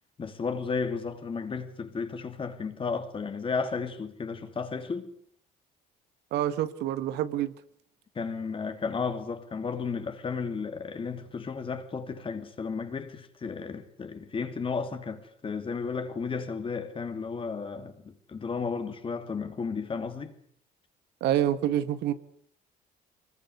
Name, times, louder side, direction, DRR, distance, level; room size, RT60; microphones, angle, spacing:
voice 1, 0.2-5.1 8.1-20.4, left 5 dB, 30° left, 3.0 m, -33 dB
voice 2, 6.3-7.5 21.2-22.1, right 11 dB, 80° right, 1.8 m, -27 dB
24.0 x 21.0 x 8.2 m
cardioid pair, 110°, 17 cm